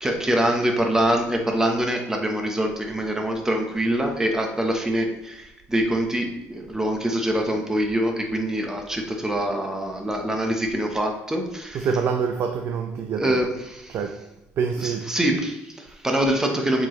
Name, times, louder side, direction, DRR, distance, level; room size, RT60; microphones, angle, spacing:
voice 1, 0.0-11.9 13.2-14.0 14.8-16.9, right 1 dB, 10° right, 3 dB, 1.1 m, -24 dB
voice 2, 11.7-13.4 13.9-14.2 14.6-15.1, right 6 dB, 55° right, 5 dB, 0.6 m, -26 dB
7.4 x 4.8 x 3.2 m, 0.93 s
cardioid pair, 115°, 5 cm